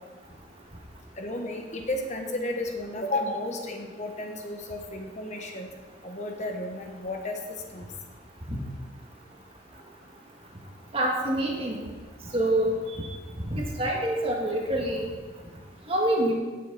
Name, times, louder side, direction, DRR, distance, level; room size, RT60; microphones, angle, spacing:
voice 1, 1.2-5.7 6.0-7.4 7.7-7.8, left 1 dB, 35° left, 2 dB, 1.2 m, -33 dB
voice 2, 10.9-11.8 12.3-12.8 13.5-15.1 15.9-16.3, right 1 dB, 30° right, -1 dB, 2.0 m, -26 dB
17.0 x 8.2 x 4.2 m, 1.4 s
head